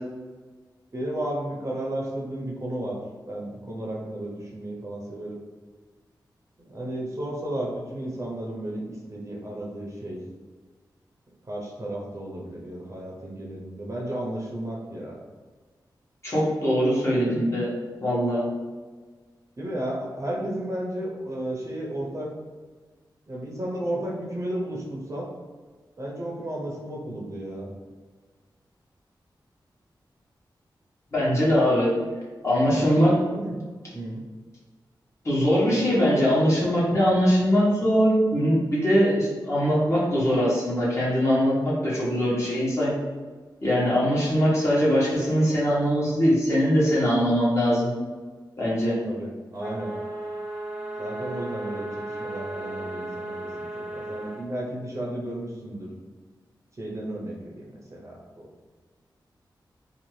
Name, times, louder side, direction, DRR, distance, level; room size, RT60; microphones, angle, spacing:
voice 1, 0.9-3.0 3.3-5.4 6.7-10.2 11.5-15.2 19.6-22.3 23.3-25.3 26.0-27.7 32.7-32.9 33.3-33.5 33.9-34.2 49.0-49.9 51.0-51.9 52.2-55.9 56.8-58.5, right 1 dB, 40° right, -3 dB, 0.6 m, -33 dB
voice 2, 16.2-17.7 18.0-18.5 31.1-31.9 32.4-33.1 35.2-42.9 43.6-47.9 48.6-49.0, equal, 35° left, -7 dB, 1.1 m, -22 dB
sound 1, 49.6-54.4, right 1 dB, 10° left, 0.8 m, -35 dB
2.7 x 2.3 x 3.1 m, 1.4 s
wide cardioid pair, 90°, 8 cm